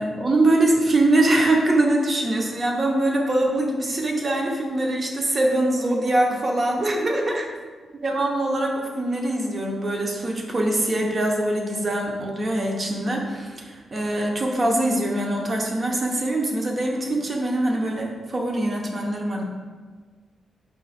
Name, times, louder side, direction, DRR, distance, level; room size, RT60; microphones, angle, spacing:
voice 1, 0.0-7.5 8.0-19.4, right 1 dB, 35° right, 0 dB, 0.7 m, -23 dB
4.8 x 2.3 x 4.2 m, 1.5 s
cardioid pair, 95°, 0 cm